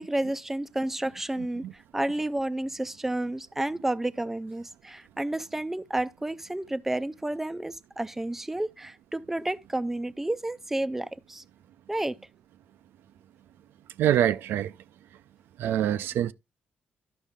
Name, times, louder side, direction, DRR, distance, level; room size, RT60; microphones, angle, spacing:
voice 1, 0.0-1.6 1.9-11.4 11.9-12.2, right 1 dB, 10° right, 0.4 m, -31 dB
voice 2, 14.0-14.7 15.6-16.3, right 11 dB, 80° right, 0.4 m, -25 dB
11.5 x 5.5 x 3.5 m
cardioid pair, 95°, 4 cm